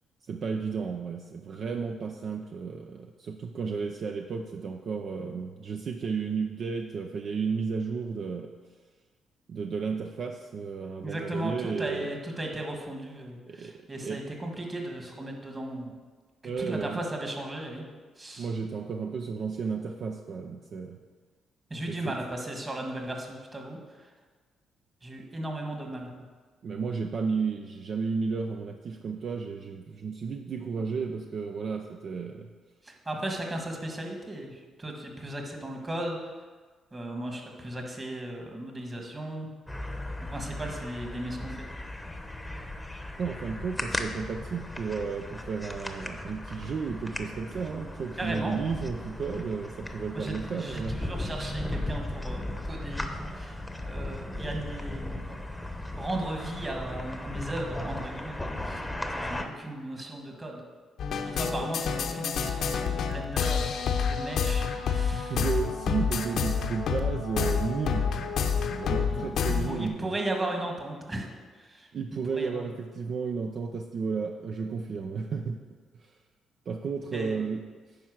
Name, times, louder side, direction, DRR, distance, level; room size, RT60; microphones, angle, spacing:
voice 1, 0.3-8.5 9.5-12.1 13.5-13.7 14.0-14.2 16.4-17.0 18.4-21.0 21.9-22.2 26.6-32.5 43.2-51.0 61.6-61.7 64.7-64.8 65.1-70.1 71.9-75.6 76.0-76.1 76.7-77.6, right 5 dB, 55° right, 4 dB, 0.6 m, -33 dB
voice 2, 11.0-15.9 16.4-17.8 18.2-18.5 21.7-24.1 25.0-26.1 32.8-36.2 36.9-39.5 40.3-41.7 48.2-48.6 50.1-55.4 55.9-60.6 61.2-63.7 64.1-65.4 69.1-71.9 72.3-72.7 77.1-77.4, right 1 dB, 25° right, 2 dB, 1.8 m, -36 dB
sound 1, 39.7-59.4, left 1 dB, 5° left, 0.9 m, -36 dB
sound 2, 61.0-69.9, left 6 dB, 70° left, 0.8 m, -28 dB
10.5 x 4.6 x 6.3 m, 1.4 s
cardioid pair, 90°, 0 cm